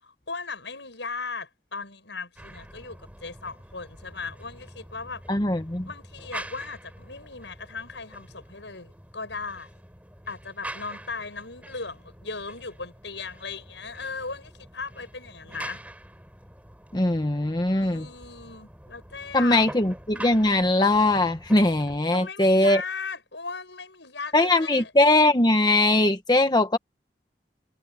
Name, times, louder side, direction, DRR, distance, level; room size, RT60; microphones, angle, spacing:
voice 1, 0.0-5.2 5.8-9.7 10.3-15.8 17.8-19.7 22.1-24.9, left 4 dB, 80° left, 6.7 m, -37 dB
sound 1, 2.4-22.0, right 1 dB, 10° right, 4.8 m, -45 dB
voice 2, 5.3-5.9 16.9-18.1 19.3-22.8 24.3-26.8, left 2 dB, 25° left, 1.1 m, -21 dB
head